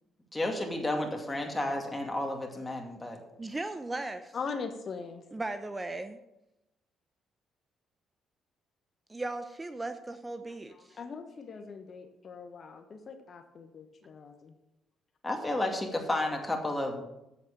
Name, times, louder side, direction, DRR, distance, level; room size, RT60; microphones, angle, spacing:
voice 1, 0.3-3.2 15.2-17.0, left 1 dB, 15° left, 3 dB, 2.3 m, -32 dB
voice 2, 3.4-4.4 5.3-6.2 9.1-11.0, right 2 dB, 20° right, 10 dB, 0.7 m, -37 dB
voice 3, 4.3-5.2 11.0-14.5, left 5 dB, 50° left, 7 dB, 1.0 m, -41 dB
8.2 x 7.4 x 6.7 m, 0.90 s
supercardioid pair, 70°, 0 cm